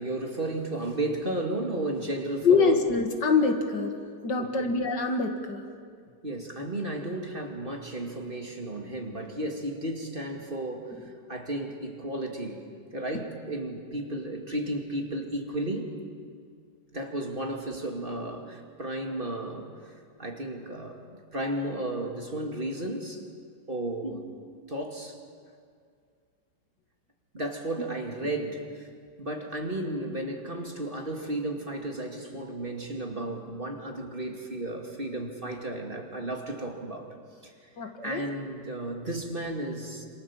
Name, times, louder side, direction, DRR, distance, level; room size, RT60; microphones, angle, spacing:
voice 1, 0.0-2.8 4.4-4.7 6.2-12.6 12.9-15.9 16.9-19.7 20.2-21.0 21.3-23.2 23.7-24.2 24.7-25.2 27.3-28.9 29.2-37.1 37.4-37.5 38.0-40.1, right 1 dB, 30° right, 2 dB, 2.6 m, -33 dB
voice 2, 2.4-4.0 4.2-5.7 24.0-24.1 27.8-27.9 37.8-38.2, left 4 dB, 70° left, 5 dB, 2.6 m, -25 dB
27.5 x 27.0 x 7.3 m, 2.1 s
omnidirectional pair, 2.0 m